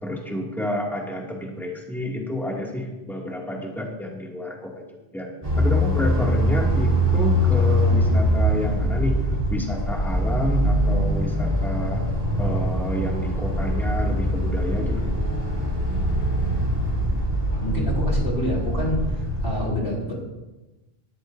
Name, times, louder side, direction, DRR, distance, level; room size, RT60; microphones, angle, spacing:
voice 1, 0.0-4.9 5.1-5.3 5.5-9.2 9.5-12.1 12.4-15.1, equal, ahead, -2 dB, 2.3 m, -29 dB
sound 1, 5.4-19.7, equal, 25° right, 4.8 m, -23 dB
voice 2, 17.5-20.2, equal, 80° left, -2 dB, 4.1 m, -27 dB
20.0 x 13.5 x 2.7 m, 1.1 s
omnidirectional pair, 1.1 m